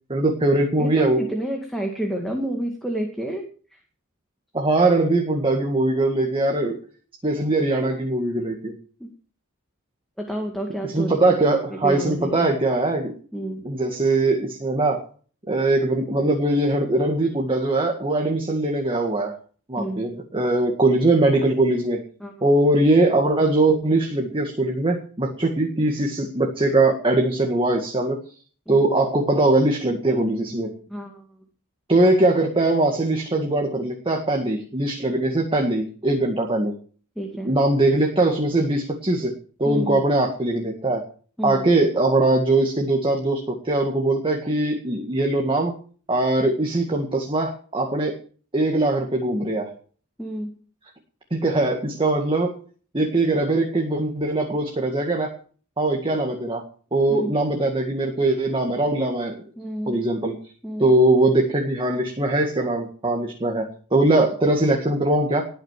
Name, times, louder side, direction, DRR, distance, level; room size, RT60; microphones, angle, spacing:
voice 1, 0.1-1.2 4.5-6.8 7.2-8.7 10.9-13.1 13.6-15.0 15.5-19.3 19.7-22.0 22.4-28.2 28.7-30.7 31.9-36.7 37.4-39.3 39.6-41.0 41.4-45.7 46.1-48.2 48.5-49.7 51.3-52.5 52.9-55.3 55.8-56.6 56.9-59.5 59.9-60.4 60.8-65.4, right 2 dB, 25° right, 1 dB, 2.0 m, -21 dB
voice 2, 0.8-3.4 3.7-3.8 9.0-9.1 10.2-11.4 11.7-12.5 13.3-13.7 19.8-20.1 22.2-22.4 28.7-28.8 30.9-31.3 37.2-37.5 39.6-40.1 41.4-41.7 50.2-50.5 57.1-57.3 59.6-60.1 60.6-60.9, right 1 dB, ahead, 1 dB, 2.1 m, -30 dB
19.5 x 6.6 x 7.5 m, 0.43 s
head